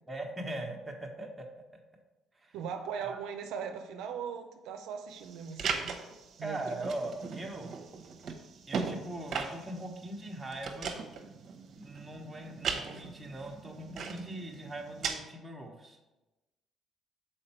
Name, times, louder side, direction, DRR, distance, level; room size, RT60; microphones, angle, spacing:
voice 1, 0.1-1.4 2.3-2.6 3.0-3.2 6.4-7.8 8.7-11.0 11.8-16.0, right 1 dB, 15° right, 1 dB, 1.2 m, -40 dB
voice 2, 2.5-6.0 6.4-6.6, right 7 dB, 85° right, 5 dB, 0.5 m, -39 dB
sound 1, 5.1-15.1, right 5 dB, 55° right, 0.9 m, -39 dB
6.5 x 4.4 x 4.4 m, 1.1 s
cardioid pair, 85°, 0 cm